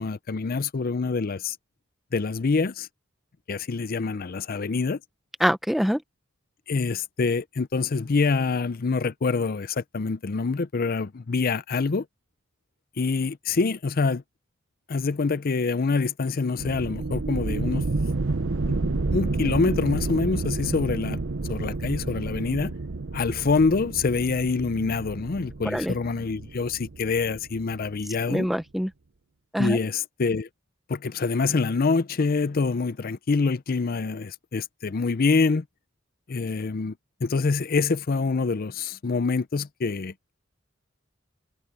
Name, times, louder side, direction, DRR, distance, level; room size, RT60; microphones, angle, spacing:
voice 1, 0.0-1.6 2.1-2.9 3.5-5.0 6.7-12.1 13.0-14.2 14.9-17.8 18.7-18.8 19.1-21.2 21.5-22.7 23.1-28.5 29.6-30.5 30.9-35.6 36.3-36.9 37.2-40.3, left 4 dB, 50° left, 0.5 m, -25 dB
voice 2, 5.4-6.0 25.7-25.9 28.3-28.9 29.5-29.8, equal, ahead, 0.8 m, -24 dB
sound 1, 16.6-28.0, right 3 dB, 70° right, 0.8 m, -30 dB
head